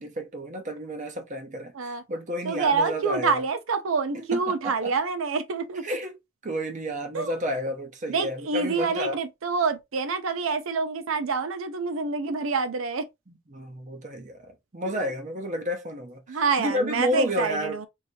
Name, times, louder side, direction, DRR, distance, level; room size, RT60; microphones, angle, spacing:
voice 1, 0.0-3.4 4.1-4.9 5.8-6.1 6.4-9.2 13.5-17.8, equal, 40° right, 0.8 m, -31 dB
voice 2, 2.4-6.0 7.1-7.3 8.1-13.0 14.9-15.0 16.3-17.9, right 4 dB, 85° right, 0.6 m, -27 dB
4.7 x 2.8 x 2.7 m
head